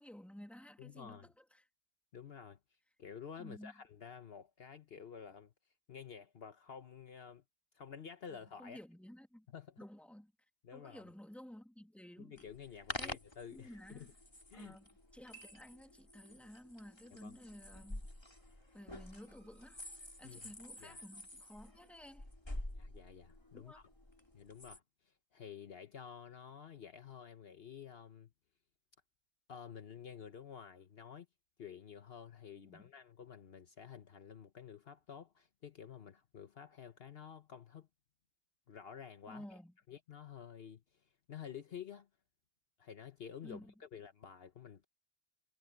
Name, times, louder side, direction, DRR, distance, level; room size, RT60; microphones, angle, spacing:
voice 1, 0.0-1.6 3.4-3.7 8.3-9.5 9.8-10.3 10.7-12.4 13.0-13.2 13.5-14.1 14.5-18.0 18.7-19.8 20.2-22.3 23.5-23.8 32.6-32.9 39.3-39.7 43.4-43.7, equal, ahead, 2.1 m, -53 dB
voice 2, 0.8-1.3 2.1-2.6 3.0-5.5 5.9-7.4 7.7-8.8 9.5-9.8 10.6-11.0 12.2-14.1 14.5-14.7 17.2-17.3 20.2-20.5 20.8-21.0 22.7-23.8 24.3-28.3 29.5-31.3 31.6-37.9 38.7-39.4 39.9-42.1 42.8-44.8, left 7 dB, 60° left, 1.2 m, -51 dB
sound 1, 12.4-24.8, left 1 dB, 25° left, 2.9 m, -49 dB
omnidirectional pair, 1.2 m